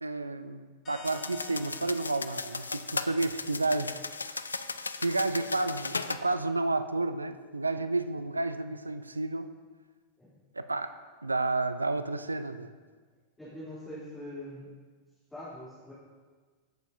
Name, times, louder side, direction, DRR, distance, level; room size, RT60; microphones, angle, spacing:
voice 1, 0.0-3.9 5.0-9.5 10.5-10.9 11.2-12.7, right 2 dB, 80° right, 12 dB, 0.4 m, -31 dB
sound 1, 0.9-4.3, equal, 30° left, 1.4 m, -52 dB
sound 2, 1.0-6.2, left 4 dB, 75° left, 0.3 m, -36 dB
voice 2, 13.4-14.7 15.3-15.9, left 1 dB, 10° left, -12 dB, 3.2 m, -43 dB
15.5 x 7.0 x 2.7 m, 1.5 s
figure-of-eight pair, 90°, 0 cm